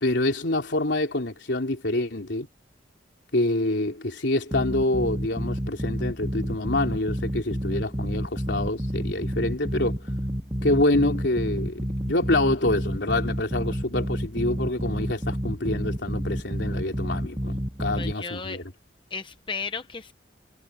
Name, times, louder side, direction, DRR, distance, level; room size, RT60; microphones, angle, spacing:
voice 1, 0.0-2.5 3.3-10.0 10.6-11.8 12.1-18.7, left 1 dB, 85° left, 3.2 m, -26 dB
sound 1, 4.5-18.1, equal, 20° right, 7.0 m, -30 dB
voice 2, 18.0-18.6 19.1-20.1, left 4 dB, 30° left, 0.9 m, -34 dB
head